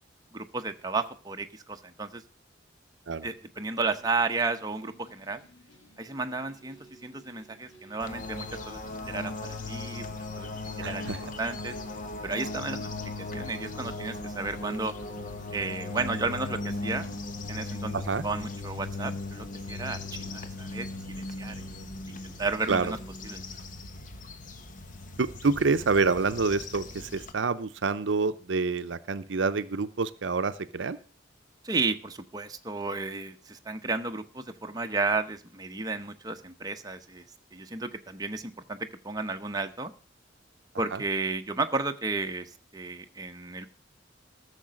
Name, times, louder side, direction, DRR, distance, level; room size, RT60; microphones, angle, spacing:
voice 1, 0.3-2.2 3.2-5.4 6.0-8.8 9.1-10.5 10.8-11.8 12.2-12.9 13.2-15.0 15.5-17.1 17.5-21.7 22.1-23.0 23.2-23.4 31.6-37.2 37.5-39.9 40.8-43.6, right 3 dB, 20° right, 5 dB, 0.8 m, -33 dB
sound 1, 3.9-23.4, equal, 75° left, 3.5 m, -57 dB
sound 2, 8.0-27.3, left 2 dB, 45° left, 1.1 m, -38 dB
voice 2, 10.8-11.2 17.9-18.2 22.7-22.9 25.2-31.0 40.9-41.0, right 4 dB, 70° right, 12 dB, 0.6 m, -27 dB
14.5 x 6.7 x 6.3 m, 0.40 s
head